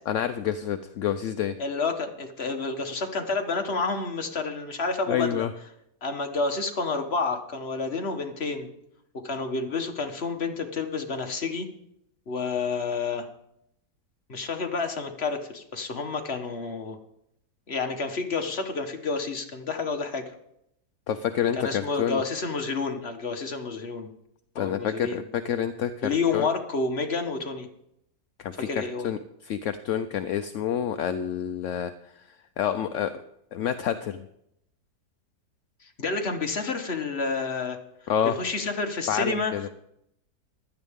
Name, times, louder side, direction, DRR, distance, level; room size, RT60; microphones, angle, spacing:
voice 1, 0.1-1.5 5.1-5.5 21.1-22.2 24.6-26.5 28.4-31.9 32.6-33.1 33.5-34.2 38.1-38.3 39.1-39.7, left 9 dB, 65° left, 9 dB, 0.8 m, -28 dB
voice 2, 1.6-5.5 6.0-8.7 9.2-11.7 12.3-13.3 14.3-17.0 17.7-20.2 21.6-24.1 24.6-25.3 26.0-27.7 28.7-29.1 36.0-37.8 38.2-39.7, left 4 dB, 40° left, 4 dB, 1.4 m, -29 dB
16.0 x 12.0 x 3.6 m, 0.77 s
omnidirectional pair, 1.8 m